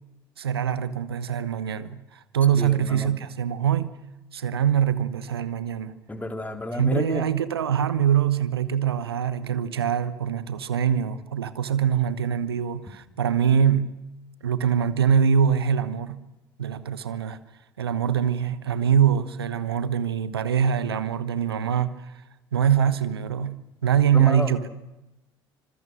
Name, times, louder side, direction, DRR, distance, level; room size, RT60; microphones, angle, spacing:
voice 1, 0.4-3.9 4.3-5.9 6.7-13.9 14.4-16.2 16.6-17.4 17.8-22.2 22.5-24.7, right 8 dB, 75° right, 1.1 m, -23 dB
voice 2, 2.5-3.1 6.1-7.2 24.1-24.5, left 2 dB, 10° left, 3.9 m, -30 dB
28.0 x 26.0 x 6.5 m
figure-of-eight pair, 60°, 13 cm